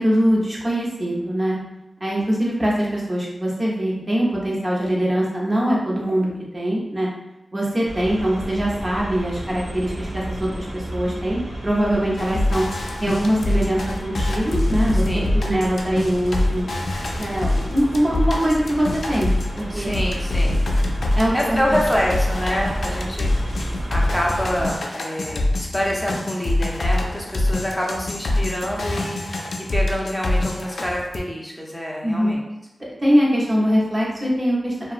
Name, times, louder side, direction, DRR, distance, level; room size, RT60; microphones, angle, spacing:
voice 1, 0.0-1.6 2.0-7.1 7.5-12.6 13.0-16.7 17.2-19.9 21.2-21.8 32.0-32.3 33.0-34.9, equal, 35° right, -5 dB, 0.8 m, -22 dB
sound 1, 7.8-24.8, equal, 80° right, 0.6 m, -32 dB
sound 2, 12.2-19.6 19.9-31.2, left 1 dB, 80° left, 0.4 m, -24 dB
voice 2, 14.9-15.4 19.7-20.6 21.3-32.4, equal, 5° left, -3 dB, 0.6 m, -26 dB
2.8 x 2.2 x 2.5 m, 0.93 s
wide cardioid pair, 90°, 0 cm